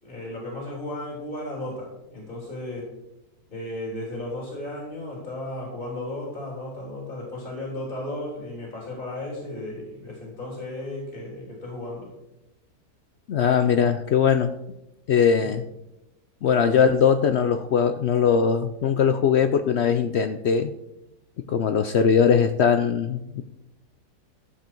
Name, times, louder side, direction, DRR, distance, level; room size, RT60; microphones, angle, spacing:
voice 1, 0.0-2.9 3.5-12.1, left 1 dB, 35° left, -3 dB, 3.5 m, -34 dB
voice 2, 13.3-14.5 15.1-15.6 16.4-20.7 21.5-23.4, left 7 dB, 65° left, 9 dB, 0.6 m, -20 dB
13.5 x 7.6 x 4.5 m, 0.92 s
omnidirectional pair, 1.6 m